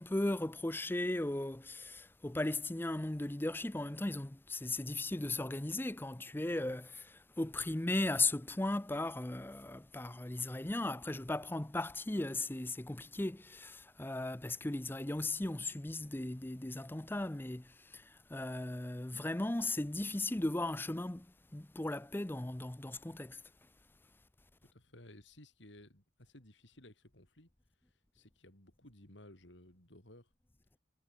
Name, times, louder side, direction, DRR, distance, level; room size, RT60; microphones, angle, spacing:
voice 1, 0.0-21.3 21.5-23.4, left 2 dB, 10° left, 0.5 m, -37 dB
voice 2, 24.7-27.5 28.1-30.3, left 1 dB, 70° left, 6.1 m, -57 dB
head